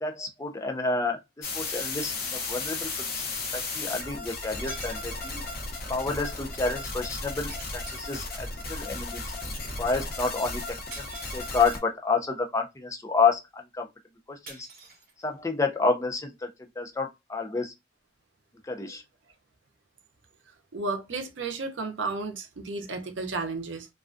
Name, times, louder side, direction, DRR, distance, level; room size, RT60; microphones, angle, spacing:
voice 1, 0.0-3.2 3.5-5.4 5.9-9.2 9.8-10.6 11.0-11.1 11.3-13.9 14.3-14.7 15.2-16.5 16.8-17.7 18.7-19.0, left 4 dB, 15° left, 0.4 m, -29 dB
sound 1, 1.4-11.8, left 3 dB, 50° left, 0.7 m, -35 dB
sound 2, 4.7-5.5 7.5-8.7 10.9-11.9 14.5-15.5, right 2 dB, 50° right, 0.9 m, -46 dB
voice 2, 20.7-23.9, right 3 dB, 80° right, 0.6 m, -33 dB
2.3 x 2.2 x 2.4 m
head